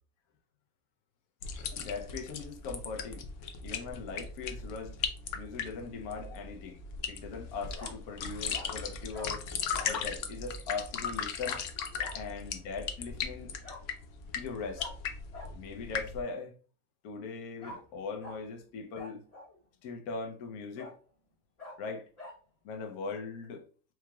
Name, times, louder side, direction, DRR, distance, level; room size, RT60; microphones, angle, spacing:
sound 1, 1.4-16.2, left 6 dB, 65° left, 0.8 m, -38 dB
voice 1, 1.7-3.2 3.6-5.0 5.3-6.8 7.1-11.6 12.1-13.5 14.3-14.9 15.5-16.5 17.0-19.2 19.8-20.9 21.8-22.1 22.6-23.7, left 4 dB, 80° left, 1.2 m, -40 dB
Bark, 6.1-6.4 7.8-8.0 8.5-8.7 9.1-9.3 9.7-10.0 11.4-11.6 12.0-12.2 13.6-13.8 14.8-14.9 15.3-15.5 17.6-17.8 18.2-18.4 18.9-19.6 20.1-20.2 20.8-21.0 21.6-21.8 22.2-22.4, left 2 dB, 30° left, 1.2 m, -45 dB
4.8 x 3.1 x 2.3 m
omnidirectional pair, 1.5 m